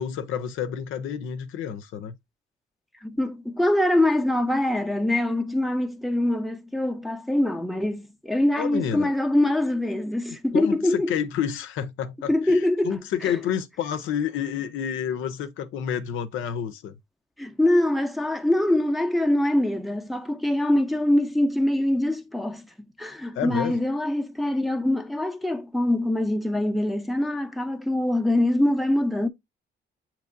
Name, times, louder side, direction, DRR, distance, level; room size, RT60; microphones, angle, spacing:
voice 1, 0.0-2.1 8.6-9.1 10.5-17.0 23.4-23.8, left 8 dB, 80° left, 0.6 m, -29 dB
voice 2, 3.0-11.1 12.3-13.4 17.4-22.6 23.0-29.3, left 1 dB, ahead, 0.6 m, -24 dB
7.1 x 3.0 x 2.5 m
cardioid pair, 90°, 20 cm